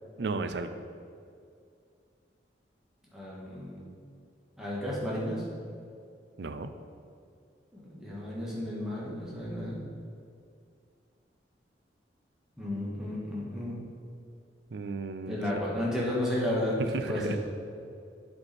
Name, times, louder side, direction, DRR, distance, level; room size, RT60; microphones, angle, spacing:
voice 1, 0.2-0.7 6.4-6.7 14.7-15.4 16.8-17.4, right 3 dB, 65° right, 9 dB, 0.5 m, -34 dB
voice 2, 3.1-3.8 4.6-5.4 7.7-9.8 12.6-13.8 15.3-16.8 17.1-17.4, left 1 dB, 5° right, -7 dB, 1.6 m, -32 dB
8.6 x 4.8 x 4.3 m, 2.4 s
head